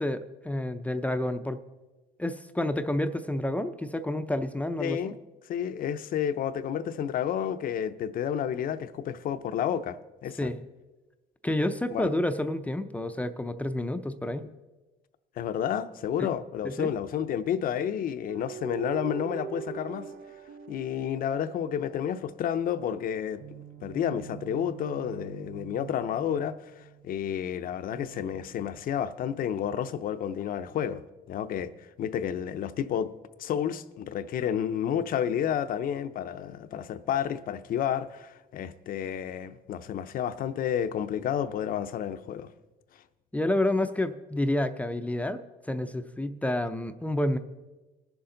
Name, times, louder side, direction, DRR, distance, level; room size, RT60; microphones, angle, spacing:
voice 1, 0.0-1.6 2.2-5.0 10.4-10.6 11.4-14.5 16.2-16.3 16.6-16.9 43.3-45.4 45.7-47.4, left 1 dB, 10° left, 0.5 m, -29 dB
voice 2, 4.8-5.2 5.5-10.5 11.9-12.1 15.4-20.1 20.7-23.4 23.8-31.0 31.3-31.7 32.0-33.1 33.4-42.5, left 9 dB, 55° left, 0.6 m, -30 dB
sound 1, 18.3-22.0 23.4-27.1 27.9-29.2, right 9 dB, 60° right, 0.6 m, -43 dB
19.5 x 7.1 x 3.9 m
cardioid pair, 110°, 17 cm